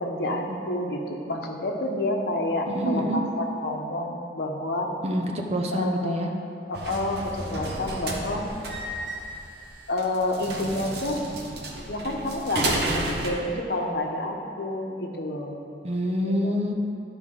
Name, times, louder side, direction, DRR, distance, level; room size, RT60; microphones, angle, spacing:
voice 1, 0.0-4.9 5.7-6.3 6.7-8.5 9.9-11.3 11.9-15.6 16.2-16.5, left 1 dB, 65° left, 1 dB, 0.9 m, -29 dB
voice 2, 2.7-3.2 5.0-6.3 15.8-16.7, equal, 35° right, 2 dB, 0.7 m, -26 dB
sound 1, 6.7-13.3, right 1 dB, 60° right, 1.0 m, -32 dB
11.5 x 4.9 x 3.8 m, 2.7 s
head